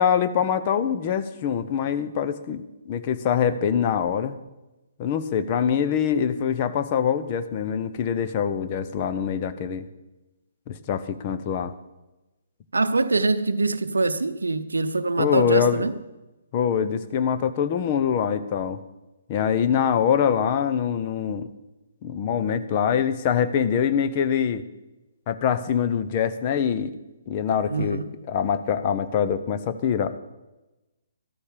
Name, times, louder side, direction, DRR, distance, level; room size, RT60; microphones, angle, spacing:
voice 1, 0.0-4.4 5.0-9.9 10.7-11.7 15.2-15.9 16.5-18.8 19.3-21.5 22.0-24.6 25.3-26.9 27.3-28.0 28.3-30.1, left 8 dB, 35° left, 1.0 m, -24 dB
voice 2, 12.7-16.0 27.7-28.2, right 3 dB, 75° right, 0.7 m, -24 dB
13.5 x 13.0 x 5.0 m
figure-of-eight pair, 130°, 0 cm